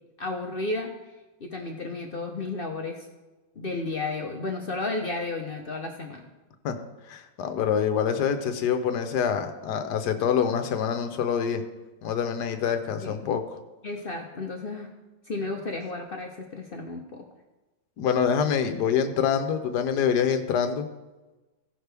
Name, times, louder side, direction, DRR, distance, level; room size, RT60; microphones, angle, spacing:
voice 1, 0.2-0.9 1.4-3.1 3.6-6.2 13.0-13.3 13.8-14.9 15.3-17.2, left 3 dB, 45° left, 2 dB, 0.7 m, -33 dB
voice 2, 7.1-11.6 12.0-13.4 18.0-20.8, left 7 dB, 65° left, 7 dB, 1.4 m, -25 dB
16.0 x 6.3 x 3.4 m, 1.1 s
omnidirectional pair, 1.9 m